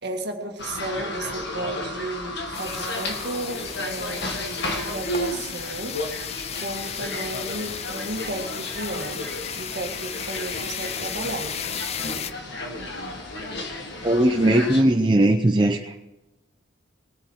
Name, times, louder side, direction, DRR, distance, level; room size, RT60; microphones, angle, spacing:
voice 1, 0.0-4.3 4.9-6.0 6.5-9.2 9.6-11.5, right 2 dB, 55° right, 4 dB, 1.9 m, -33 dB
sound 1, 0.6-14.8, left 1 dB, 55° left, 1.9 m, -33 dB
sound 2, 2.5-12.3, left 8 dB, 30° left, 0.5 m, -35 dB
voice 2, 14.0-16.0, right 1 dB, 20° right, 2 dB, 0.7 m, -19 dB
20.0 x 8.0 x 6.3 m, 1.0 s
head